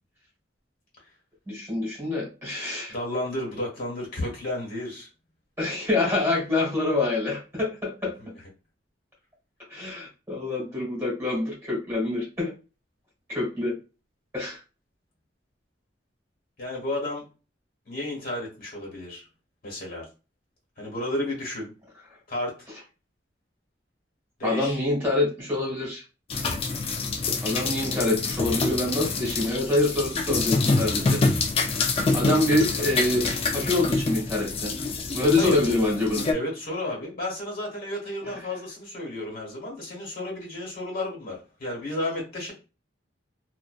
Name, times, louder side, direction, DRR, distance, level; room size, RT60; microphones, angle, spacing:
voice 1, 1.5-2.9 5.6-8.1 9.7-12.5 13.3-13.7 14.3-14.6 24.4-26.0 27.4-31.2 32.1-34.7 35.1-36.3 38.3-38.4, left 2 dB, 15° right, -3 dB, 1.2 m, -26 dB
voice 2, 2.9-5.1 16.6-17.3 17.9-19.2 19.6-20.0 20.8-21.7 22.3-22.6 24.4-24.8 35.4-35.6 36.3-42.5, left 1 dB, 55° left, -2 dB, 1.2 m, -32 dB
sound 1, 26.3-36.3, left 3 dB, 35° left, 0.3 m, -26 dB
2.5 x 2.1 x 2.3 m, 0.31 s
head